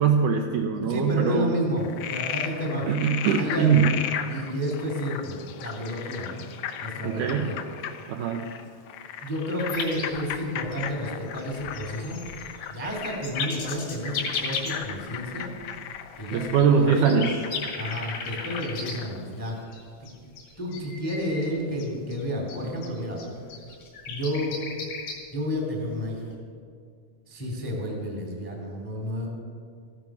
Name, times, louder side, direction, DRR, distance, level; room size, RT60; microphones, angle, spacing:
voice 1, 0.0-1.5 2.9-4.0 7.0-7.5 8.1-8.4 16.3-17.3, right 7 dB, 75° right, 3 dB, 1.9 m, -22 dB
voice 2, 0.7-2.8 3.4-3.8 4.2-6.4 6.8-7.6 9.2-12.2 12.7-15.5 16.2-17.1 17.7-19.5 20.0-20.1 20.6-23.2 24.1-24.6 25.3-26.2 27.3-29.3, equal, 10° left, 0 dB, 1.4 m, -31 dB
Frog, 1.8-19.2, left 9 dB, 85° left, 1.6 m, -36 dB
sound 1, 9.6-14.8 15.1-15.2 16.0-18.9 19.4-21.5 21.8-25.2 26.3-26.4, left 5 dB, 65° left, 4.0 m, -35 dB
15.0 x 11.5 x 6.0 m, 2.2 s
omnidirectional pair, 4.4 m